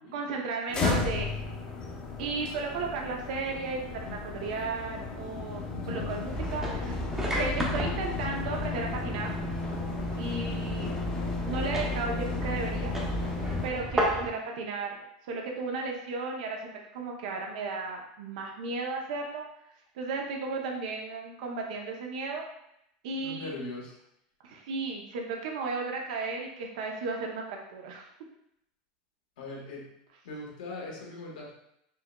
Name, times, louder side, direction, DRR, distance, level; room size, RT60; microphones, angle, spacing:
voice 1, 0.1-1.3 2.2-7.0 7.4-9.3 10.2-10.9 11.4-12.9 13.6-14.9 15.2-19.5 19.9-22.4 23.0-23.5 24.4-28.1, right 4 dB, 70° right, 1 dB, 0.6 m, -34 dB
sound 1, 0.7-13.7, left 3 dB, 20° left, 0.7 m, -34 dB
sound 2, 6.3-14.3, equal, 10° right, 0.7 m, -34 dB
voice 2, 23.2-23.9 29.4-29.9 30.2-31.5, left 2 dB, 85° left, -2 dB, 1.2 m, -40 dB
4.5 x 2.9 x 2.2 m, 0.78 s
supercardioid pair, 130°, 4 cm